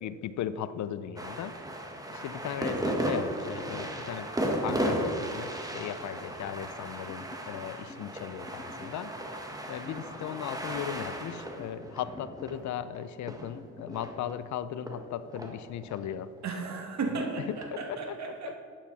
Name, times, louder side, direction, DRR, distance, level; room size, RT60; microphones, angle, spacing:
voice 1, 0.0-1.6 2.1-4.3 4.6-9.1 9.7-16.3 17.1-17.6 17.9-18.2 18.4-18.5, left 10 dB, 70° left, 14 dB, 0.6 m, -37 dB
sound 1, 1.2-14.4 14.9-16.8 17.5-17.7, right 1 dB, 10° right, 1.5 m, -35 dB
sound 2, 7.1-8.1 8.5-9.0 9.9-10.4 10.8-11.8 12.2-12.7 13.5-14.1, left 2 dB, 15° left, 1.2 m, -48 dB
voice 2, 16.4-18.6, right 4 dB, 65° right, 2 dB, 2.3 m, -34 dB
12.0 x 9.2 x 4.2 m, 2.4 s
cardioid pair, 90°, 30 cm